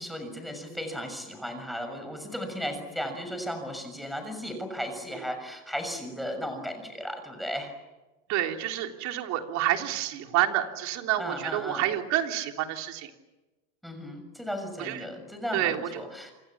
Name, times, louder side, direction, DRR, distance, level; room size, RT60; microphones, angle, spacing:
voice 1, 0.0-7.7 11.2-11.9 13.8-16.3, equal, ahead, 6 dB, 6.6 m, -35 dB
voice 2, 8.3-13.1 14.8-15.0 15.5-16.0, right 12 dB, 50° right, 4 dB, 3.6 m, -28 dB
29.0 x 27.5 x 7.4 m, 1.1 s
supercardioid pair, 145°, 37 cm